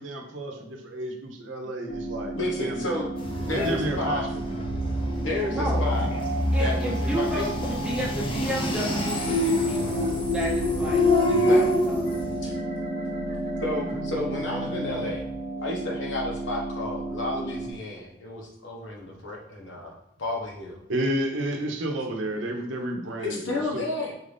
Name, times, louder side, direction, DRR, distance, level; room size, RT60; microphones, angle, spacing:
voice 1, 0.0-3.0 3.5-4.6 20.9-23.9, right 1 dB, 75° right, 2 dB, 0.8 m, -31 dB
sound 1, 1.9-17.7, right 2 dB, 55° left, 0.9 m, -34 dB
voice 2, 2.3-3.1 3.4-4.3 5.2-6.1 6.6-7.5 11.3-11.7 12.4-12.6 13.6-15.2 15.6-19.9 20.2-20.8 23.2-24.1, left 2 dB, 75° left, -1 dB, 1.0 m, -31 dB
sound 2, 3.2-12.5, left 1 dB, 30° left, 0.5 m, -26 dB
voice 3, 5.5-5.8 6.5-12.1, right 1 dB, 5° right, -4 dB, 0.9 m, -33 dB
sound 3, 8.9-15.0, equal, 35° right, 0.9 m, -36 dB
4.7 x 2.6 x 3.3 m, 0.83 s
head